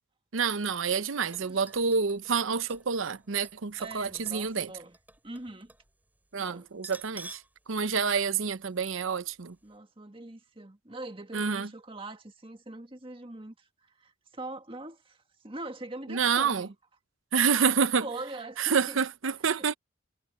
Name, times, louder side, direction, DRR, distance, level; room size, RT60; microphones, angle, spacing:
voice 1, 0.3-4.7 6.3-7.4 7.7-9.6 11.3-11.7 16.1-16.7 17.3-18.1 18.6-19.7, right 6 dB, 85° right, 0.8 m, -28 dB
sound 1, 1.2-5.9 6.2-6.3 6.8-7.6 7.9-8.0 8.8-9.0 9.3-9.4, right 2 dB, 10° right, 7.3 m, -51 dB
voice 2, 3.8-5.0 5.2-5.7 6.4-6.7 9.6-16.7 17.5-19.0 19.4-19.8, right 2 dB, 25° right, 1.8 m, -43 dB
head